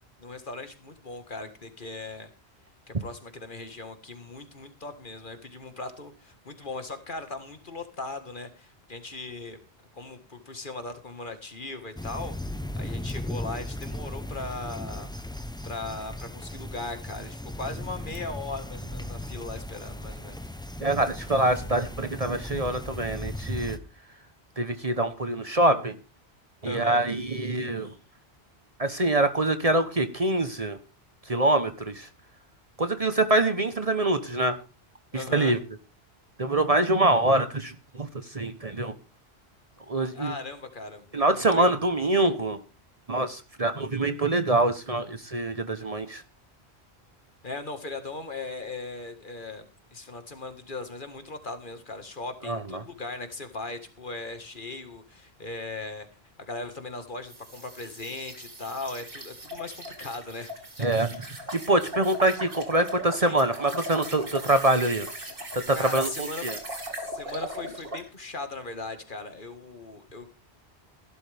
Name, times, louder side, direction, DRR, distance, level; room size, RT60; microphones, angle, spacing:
voice 1, 0.2-2.3 2.9-9.6 9.9-12.3 12.8-15.1 15.7-20.4 26.6-27.1 35.1-35.6 40.1-41.8 47.4-49.7 49.9-56.1 56.5-60.9 63.2-63.4 65.7-70.3, left 3 dB, 50° left, 8 dB, 1.9 m, -38 dB
sound 1, 12.0-23.8, left 1 dB, 5° left, 0.7 m, -37 dB
voice 2, 20.8-23.8 24.6-26.0 26.6-27.9 28.8-30.8 31.3-32.1 32.8-34.6 35.1-35.6 36.4-38.9 39.9-40.3 41.1-42.6 43.1-46.2 52.4-52.8 60.8-65.1 65.5-66.6, right 2 dB, 35° right, 9 dB, 1.1 m, -25 dB
sound 2, 57.3-68.1, equal, 55° right, 2.7 m, -39 dB
15.5 x 12.0 x 3.5 m, 0.33 s
omnidirectional pair, 1.1 m